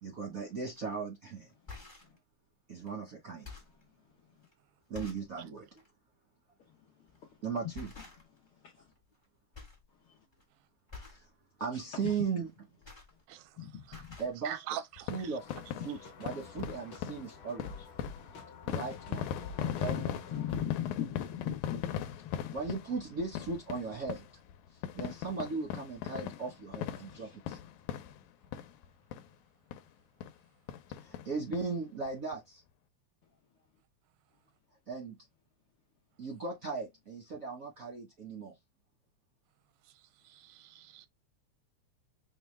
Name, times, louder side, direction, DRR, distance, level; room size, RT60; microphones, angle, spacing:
voice 1, 0.0-1.5 2.7-3.5 4.9-5.7 7.4-7.9 11.0-11.3 11.6-12.5 14.2-14.5 15.1-15.5 15.8-17.9 18.6-19.3 19.8-20.1 22.5-24.2 24.9-27.6 31.0-32.6 34.9-35.2 36.2-38.5, right 5 dB, 60° right, 0.9 m, -37 dB
sound 1, 0.7-0.9 1.5-2.2 2.8-2.9 3.3-3.8 4.4-4.5 4.9-5.3 5.7-5.9 7.1-7.3 7.7-8.5 8.8-9.2 9.5-9.9 10.2-10.4 10.9-11.3 12.4-13.6 13.8-14.4 15.1-15.2 15.4-15.6, left 4 dB, 35° left, 0.4 m, -49 dB
voice 2, 11.9-12.2 13.6-13.8 19.6-22.5 27.1-27.3, left 9 dB, 70° left, 1.3 m, -38 dB
voice 3, 13.3-14.0 14.4-15.4 15.9-16.0 39.8-41.1, right 11 dB, 85° right, 2.0 m, -44 dB
sound 2, 15.0-28.9 29.1-29.3 29.7-29.8 30.2-30.4 30.7-31.6 32.1-32.2 32.3-32.4, left 9 dB, 90° left, 2.0 m, -40 dB
sound 3, 15.4-20.6, left 4 dB, 55° left, 1.6 m, -48 dB
5.5 x 2.2 x 3.2 m
omnidirectional pair, 3.3 m